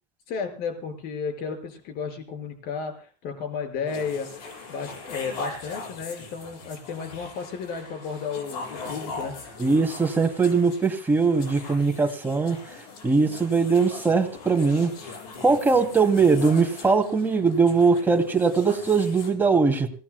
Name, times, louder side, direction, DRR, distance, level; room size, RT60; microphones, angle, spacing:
voice 1, 0.3-9.3, left 5 dB, 50° left, 5 dB, 5.6 m, -33 dB
sound 1, 3.9-19.3, left 3 dB, 75° left, 7.6 m, -40 dB
voice 2, 9.6-12.6 13.0-14.9 15.4-19.9, right 4 dB, 10° right, 3 dB, 2.6 m, -21 dB
26.5 x 18.5 x 2.3 m, 0.38 s
supercardioid pair, 130°, 20 cm